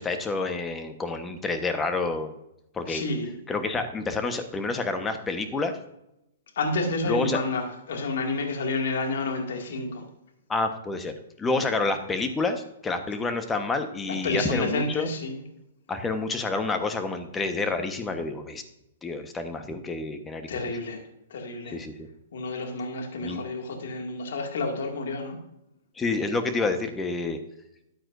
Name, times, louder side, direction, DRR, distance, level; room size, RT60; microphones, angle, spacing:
voice 1, 0.0-2.3 2.7-3.0 3.5-5.8 7.0-7.4 10.5-15.1 15.9-18.6 19.0-20.6 21.7-22.1 23.2-23.4 26.0-27.4, left 3 dB, 15° left, 7 dB, 1.2 m, -28 dB
voice 2, 2.9-3.3 6.6-10.0 14.1-15.4 20.5-21.0 21.3-21.8 22.3-25.4, left 3 dB, 70° left, 3 dB, 2.2 m, -30 dB
13.5 x 8.9 x 2.6 m, 0.84 s
hypercardioid pair, 130°, 0 cm